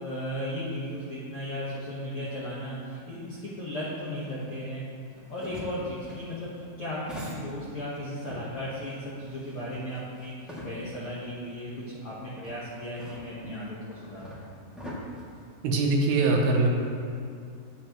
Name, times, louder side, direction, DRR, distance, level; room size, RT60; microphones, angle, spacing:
voice 1, 0.0-4.9 5.3-14.4, equal, 70° left, -8 dB, 1.3 m, -36 dB
sound 1, 5.1-8.0 8.3-11.1 11.5-11.6 12.4-16.1, left 1 dB, ahead, 0.5 m, -43 dB
voice 2, 15.6-16.7, right 3 dB, 85° right, 0 dB, 2.9 m, -22 dB
9.5 x 8.6 x 3.0 m, 2.4 s
omnidirectional pair, 4.4 m